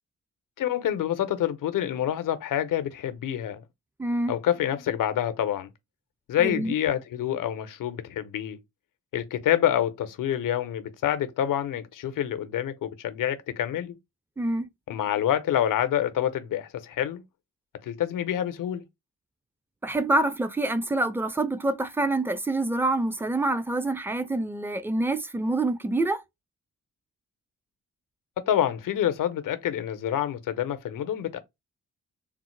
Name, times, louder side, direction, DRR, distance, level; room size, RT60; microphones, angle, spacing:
voice 1, 0.6-3.6 4.3-5.7 6.3-8.6 9.1-13.9 14.9-17.2 17.8-18.8 28.5-31.4, left 10 dB, 70° left, 0.7 m, -27 dB
voice 2, 4.0-4.3 6.4-6.8 14.4-14.7 19.8-26.2, right 2 dB, 5° right, 0.5 m, -26 dB
3.6 x 2.0 x 3.1 m
supercardioid pair, 50°, 34 cm